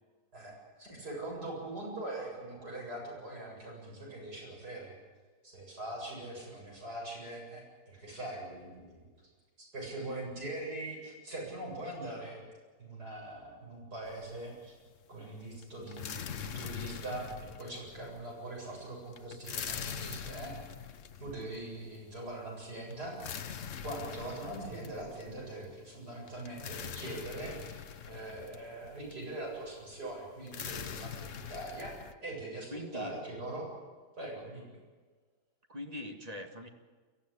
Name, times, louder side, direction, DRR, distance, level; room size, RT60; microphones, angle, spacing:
voice 1, 0.3-4.9 5.4-9.1 9.6-12.4 12.8-14.8 15.1-20.6 21.2-23.2 23.8-32.0 32.2-33.7 34.2-34.7, right 2 dB, 65° right, -2 dB, 8.6 m, -42 dB
sound 1, 14.0-14.7 15.0-32.1, left 8 dB, 50° left, 1.2 m, -43 dB
voice 2, 32.7-33.2 35.7-36.7, left 1 dB, 20° right, 4 dB, 1.8 m, -42 dB
23.5 x 15.0 x 9.9 m, 1.4 s
omnidirectional pair, 1.8 m